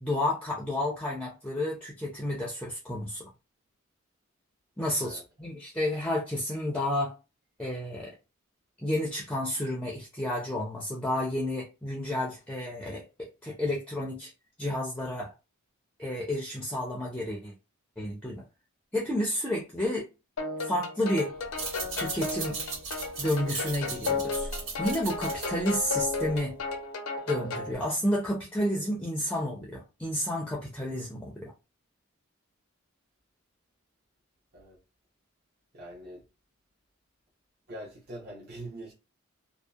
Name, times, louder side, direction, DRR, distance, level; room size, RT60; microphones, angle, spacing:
voice 1, 0.0-3.3 4.8-7.2 7.6-8.2 8.8-14.3 14.6-15.3 16.0-17.5 18.0-18.4 18.9-20.1 20.6-21.3 22.0-22.6 23.2-24.5 24.8-26.6 27.3-31.5, left 1 dB, 5° left, 0.4 m, -31 dB
voice 2, 5.0-5.5 34.5-34.8 35.7-36.2 37.7-38.9, right 1 dB, 45° right, 0.8 m, -43 dB
sound 1, 20.4-27.7, left 3 dB, 85° left, 0.6 m, -34 dB
sound 2, 21.4-26.6, right 4 dB, 70° right, 1.3 m, -38 dB
2.7 x 2.0 x 2.3 m
head